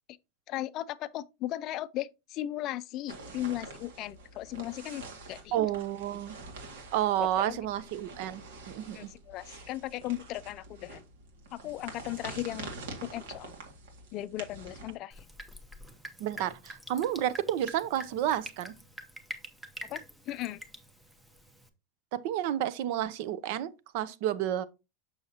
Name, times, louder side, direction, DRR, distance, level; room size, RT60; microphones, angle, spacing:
voice 1, 0.5-5.6 7.2-7.6 8.9-11.0 11.5-12.7 13.0-13.5 14.1-15.2 19.9-20.0 20.3-20.6, left 14 dB, 40° left, 0.4 m, -37 dB
sound 1, 3.1-15.0, right 3 dB, 90° right, 2.0 m, -46 dB
voice 2, 5.5-6.4 6.9-9.1 16.2-18.7 22.2-24.7, right 11 dB, 60° right, 0.6 m, -31 dB
Drip, 15.1-21.7, right 1 dB, 5° right, 0.8 m, -46 dB
6.4 x 6.2 x 2.8 m
supercardioid pair, 150°, 0 cm